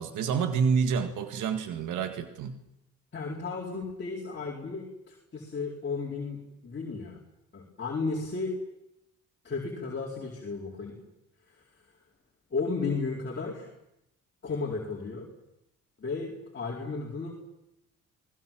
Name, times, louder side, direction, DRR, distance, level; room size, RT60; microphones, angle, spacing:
voice 1, 0.0-2.6, right 6 dB, 85° right, 8 dB, 1.9 m, -28 dB
voice 2, 3.1-7.2 7.5-8.5 9.4-11.0 11.5-11.6 12.5-13.7 14.4-15.3 16.0-17.3, left 4 dB, 35° left, -3 dB, 4.7 m, -34 dB
29.0 x 20.0 x 7.5 m, 0.85 s
cardioid pair, 90°, 30 cm